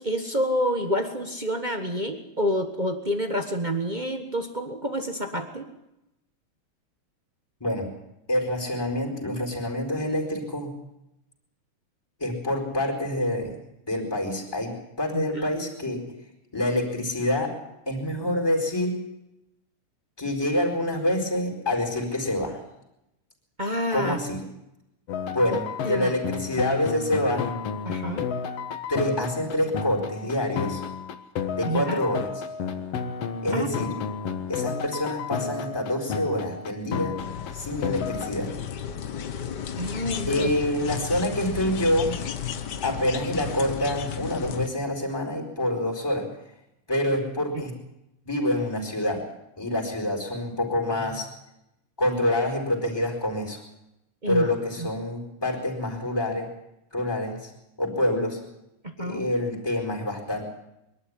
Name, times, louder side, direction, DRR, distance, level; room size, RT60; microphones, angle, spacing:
voice 1, 0.0-5.7 15.1-15.4 23.6-24.2 25.5-26.1 27.8-28.3 31.6-32.0 33.5-33.7 39.8-40.5 54.2-54.5 54.8-54.9 58.8-59.2, equal, 45° right, 5 dB, 0.5 m, -28 dB
voice 2, 7.6-7.9 8.3-10.7 12.2-13.6 13.9-16.1 16.5-17.5 17.8-19.0 20.2-22.6 23.9-24.5 25.3-27.5 28.9-30.8 31.6-32.4 33.4-33.9 34.5-37.1 37.5-38.5 40.3-42.2 42.8-46.3 46.9-47.7 48.3-49.2 49.6-51.3 52.0-53.6 54.3-56.5 56.9-57.5 57.8-58.4 59.0-60.4, left 1 dB, 5° left, 2 dB, 4.6 m, -27 dB
sound 1, 25.1-38.3, left 6 dB, 55° left, 2.2 m, -32 dB
sound 2, 37.2-44.7, left 8 dB, 80° left, 0.9 m, -34 dB
23.5 x 12.5 x 10.0 m, 0.88 s
omnidirectional pair, 3.6 m